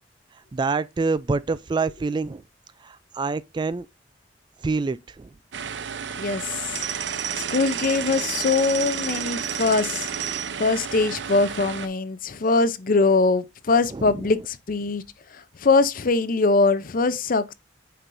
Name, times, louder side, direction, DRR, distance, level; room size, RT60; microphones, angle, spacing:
voice 1, 0.5-2.4 2.8-3.9 4.6-5.3 13.9-14.3, right 4 dB, 25° right, 0.3 m, -26 dB
sound 1, 5.5-11.9, right 7 dB, 80° right, 0.6 m, -30 dB
voice 2, 6.2-6.8 7.4-10.1 10.6-15.0 15.6-17.5, left 3 dB, 50° left, 0.6 m, -22 dB
8.6 x 5.4 x 2.6 m
head